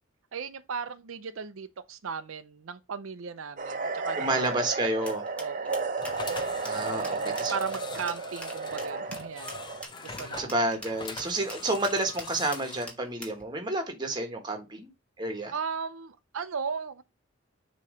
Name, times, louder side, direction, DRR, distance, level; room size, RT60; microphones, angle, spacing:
voice 1, 0.3-4.7 5.0-6.0 6.9-9.6 10.0-10.5 15.5-17.0, right 5 dB, 85° right, 0.6 m, -37 dB
sound 1, 3.6-9.8, right 4 dB, 40° right, 0.8 m, -33 dB
voice 2, 4.2-5.3 6.6-7.5 10.1-14.9 15.2-15.5, right 2 dB, 20° right, 1.3 m, -30 dB
sound 2, 5.1-13.4, equal, 5° left, 1.2 m, -43 dB
sound 3, 6.0-12.9, left 4 dB, 20° left, 0.6 m, -43 dB
6.8 x 3.1 x 4.9 m
head